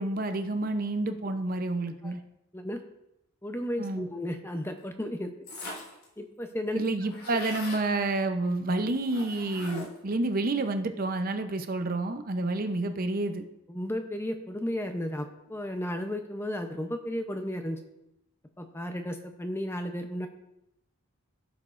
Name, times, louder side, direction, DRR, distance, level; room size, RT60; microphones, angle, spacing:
voice 1, 0.0-2.2 3.8-4.1 6.7-13.4, right 2 dB, 40° right, 8 dB, 0.6 m, -29 dB
voice 2, 3.4-5.3 6.2-6.8 13.7-17.8 18.6-20.3, left 1 dB, 10° left, 6 dB, 0.6 m, -34 dB
sound 1, 5.5-6.0 6.4-6.5 6.7-7.8 9.1-10.1, left 1 dB, 70° left, 3.6 m, -41 dB
14.5 x 7.0 x 2.5 m, 0.85 s
head